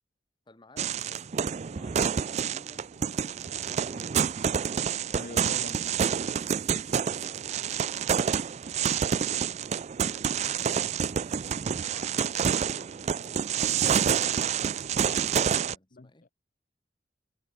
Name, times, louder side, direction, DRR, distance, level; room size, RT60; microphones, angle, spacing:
voice 1, 0.5-1.4 1.7-4.2 4.8-6.5 6.9-7.9 9.1-11.0 11.6-16.2, left 1 dB, 25° left, 2.1 m, -56 dB
sound 1, 0.8-15.7, right 7 dB, 40° right, 0.4 m, -28 dB
voice 2, 5.2-5.8 15.9-16.3, left 3 dB, 45° left, 0.8 m, -43 dB
head